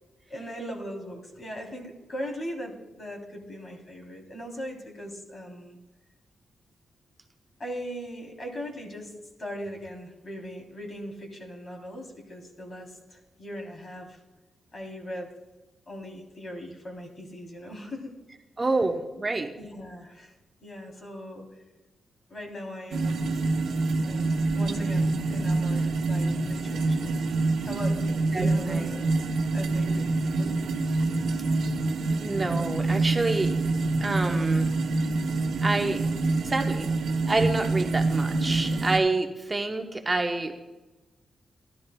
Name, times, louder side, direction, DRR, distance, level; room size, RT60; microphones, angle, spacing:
voice 1, 0.3-5.8 7.6-9.1 9.4-14.2 14.7-15.3 15.9-18.1 19.1-19.2 19.6-20.3 20.6-21.5 22.3-23.2 24.0-27.2 27.6-29.1 29.5-30.5, equal, 40° left, 1 dB, 3.1 m, -39 dB
voice 2, 18.6-19.5 28.3-28.9 32.1-33.5 34.0-34.7 35.6-36.0 36.4-36.9 37.3-40.5, right 2 dB, 25° right, 4 dB, 0.8 m, -27 dB
sound 1, 22.9-39.0, right 3 dB, 85° right, 1.1 m, -26 dB
16.5 x 12.0 x 2.2 m, 1.1 s
cardioid pair, 90°, 0 cm